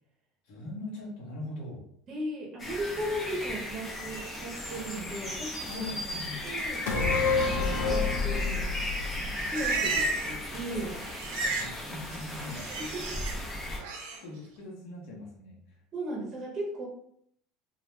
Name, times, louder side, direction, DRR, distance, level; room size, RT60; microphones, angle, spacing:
voice 1, 0.5-1.9 5.6-6.4 11.5-12.7 14.2-15.6, left 2 dB, 65° left, -2 dB, 1.0 m, -41 dB
voice 2, 2.1-5.8 6.4-6.8 7.5-8.7 9.5-11.0 12.8-13.2 13.6-13.8 15.9-16.9, right 1 dB, 30° right, -3 dB, 0.8 m, -36 dB
sound 1, 2.6-13.8, left 1 dB, 15° left, 0.5 m, -36 dB
sound 2, 6.9-10.4 10.8-10.9, left 4 dB, 85° left, 0.4 m, -29 dB
Livestock farm animals working animals, 9.0-10.4 10.7-11.7 12.0-13.3 13.8-14.2, right 3 dB, 85° right, 0.7 m, -33 dB
2.3 x 2.2 x 3.1 m, 0.68 s
cardioid pair, 160°, 0 cm